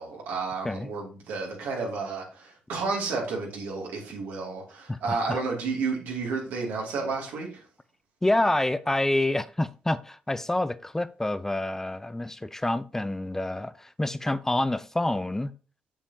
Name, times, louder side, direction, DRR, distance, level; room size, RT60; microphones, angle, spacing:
voice 1, 0.0-7.6, right 4 dB, 85° right, 2.5 m, -31 dB
voice 2, 4.9-5.4 8.2-15.5, left 1 dB, 15° left, 0.5 m, -27 dB
7.4 x 7.0 x 2.8 m
supercardioid pair, 65°, 3 cm